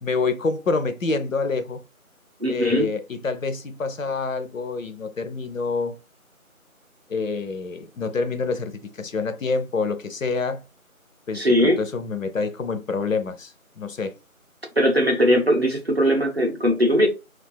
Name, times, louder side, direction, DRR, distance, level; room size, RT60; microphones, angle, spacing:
voice 1, 0.0-1.8 2.5-6.0 7.1-10.6 11.3-14.1, left 4 dB, 65° left, 0.5 m, -27 dB
voice 2, 2.4-2.9 11.3-11.8 14.8-17.1, equal, 45° right, 0.6 m, -19 dB
2.3 x 2.3 x 2.3 m
figure-of-eight pair, 170°, 43 cm